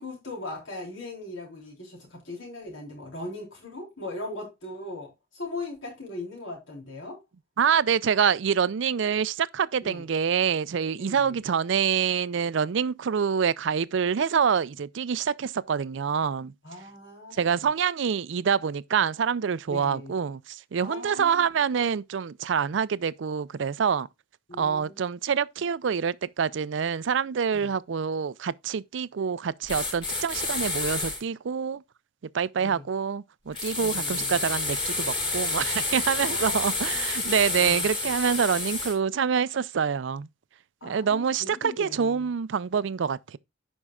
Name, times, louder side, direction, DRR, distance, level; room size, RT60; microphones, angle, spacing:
voice 1, 0.0-7.2 9.8-10.1 11.0-11.3 16.6-17.7 19.7-20.1 20.8-21.4 24.5-25.0 27.5-27.7 32.6-32.9 33.8-34.4 36.3-37.0 37.6-37.9 40.8-42.3, left 2 dB, 80° left, 3.9 m, -39 dB
voice 2, 7.6-16.5 17.4-24.1 24.6-31.8 32.3-40.3 40.8-43.4, right 7 dB, 70° right, 0.4 m, -26 dB
sound 1, 29.7-31.2 33.5-38.9, left 3 dB, 25° left, 2.8 m, -29 dB
14.5 x 5.4 x 2.3 m
head